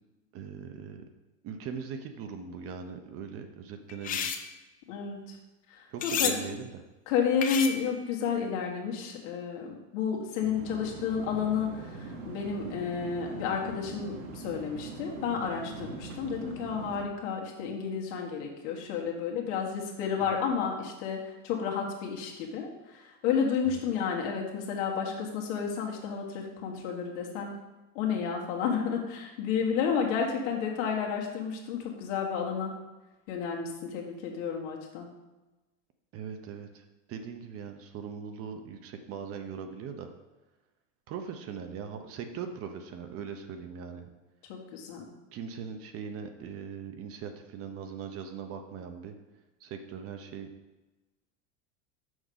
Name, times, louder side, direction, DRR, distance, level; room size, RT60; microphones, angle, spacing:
voice 1, 0.3-1.0 1.4-4.5 5.9-6.8 10.4-10.7 15.8-16.0 20.2-20.4 23.7-23.8 36.1-40.1 41.1-44.1 45.3-49.2 49.6-50.5, right 7 dB, 35° right, 6 dB, 0.7 m, -40 dB
sound 1, 3.9-4.5 6.0-6.4 7.4-7.9, left 7 dB, 25° left, 0.4 m, -30 dB
voice 2, 4.9-5.4 5.7-6.5 7.1-27.5 27.9-32.7 33.3-35.1 44.5-45.1, left 6 dB, 65° left, 0 dB, 1.7 m, -31 dB
sound 2, 10.5-17.0, right 4 dB, 85° right, 1.4 m, -42 dB
6.3 x 5.3 x 5.1 m, 1.1 s
supercardioid pair, 140°, 38 cm